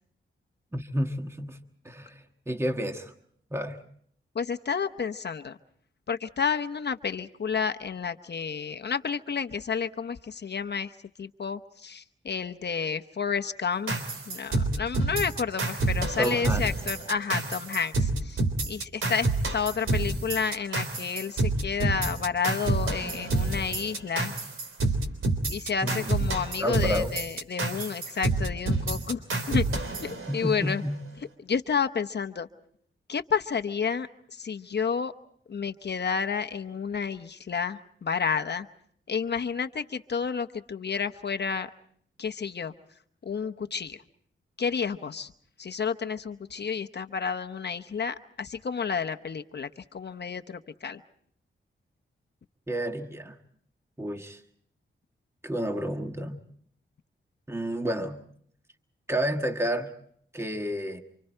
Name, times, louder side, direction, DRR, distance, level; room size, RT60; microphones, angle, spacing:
voice 1, 0.7-1.6 1.8-3.1 3.5-3.8 16.2-16.7 25.8-27.2 30.3-31.0 52.7-53.4 54.0-54.4 55.4-56.4 57.5-58.2 59.1-59.9 60.3-61.0, equal, 10° right, 5 dB, 1.5 m, -30 dB
voice 2, 4.3-5.6 6.1-10.9 11.2-13.9 14.3-24.3 25.5-29.6 30.0-30.8 31.4-32.5 33.1-35.1 35.5-38.7 39.1-41.7 42.2-42.7 43.2-44.0 44.6-45.3 45.6-51.0, left 6 dB, 55° left, 7 dB, 0.9 m, -30 dB
sound 1, 13.9-30.8, right 2 dB, 80° right, 3.5 m, -28 dB
28.5 x 26.0 x 4.5 m, 0.64 s
wide cardioid pair, 105°, 21 cm